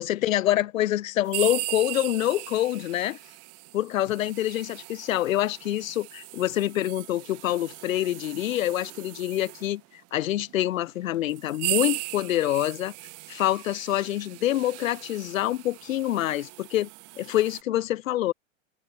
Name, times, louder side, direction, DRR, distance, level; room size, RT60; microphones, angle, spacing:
voice 1, 0.0-3.2 3.7-9.8 10.1-12.9 13.3-16.9 17.2-18.3, left 13 dB, 90° left, 0.9 m, -26 dB
sound 1, 1.3-9.7 10.5-10.6 11.2-17.6, right 24 dB, 40° right, 3.2 m, -37 dB
supercardioid pair, 140°, 39 cm